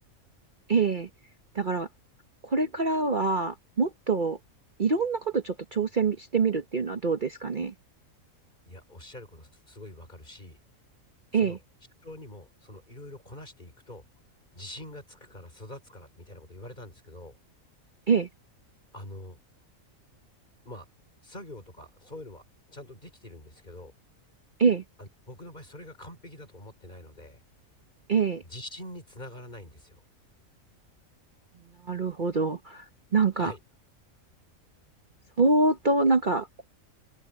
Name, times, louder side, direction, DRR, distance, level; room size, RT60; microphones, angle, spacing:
voice 1, 0.7-1.1 1.5-1.9 2.4-4.4 4.8-7.7 11.3-11.6 18.1-18.3 24.6-24.8 28.1-28.4 31.8-33.5 35.4-36.7, right 4 dB, 40° right, 1.2 m, -25 dB
voice 2, 8.7-10.6 11.3-11.6 12.0-14.1 14.5-17.4 18.9-19.4 20.6-20.9 21.2-22.4 22.7-23.9 25.0-27.4 28.4-30.0 33.3-33.6, left 1 dB, 35° left, 5.0 m, -45 dB
omnidirectional pair, 1.4 m